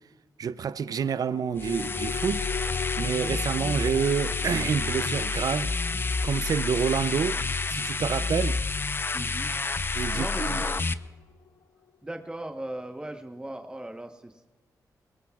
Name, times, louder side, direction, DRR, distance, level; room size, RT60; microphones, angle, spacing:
voice 1, 0.4-2.5 3.0-5.7 6.2-7.4 7.7-8.6 9.9-10.6, right 7 dB, 65° right, 0.5 m, -28 dB
sound 1, 0.7-11.5 11.9-12.0, left 6 dB, 70° left, 0.7 m, -41 dB
sound 2, 1.6-10.9, left 4 dB, 30° left, 0.6 m, -29 dB
voice 2, 9.1-9.5 10.1-10.9 12.0-14.5, right 1 dB, 10° right, 1.0 m, -38 dB
22.0 x 19.0 x 2.4 m
cardioid pair, 75°, 7 cm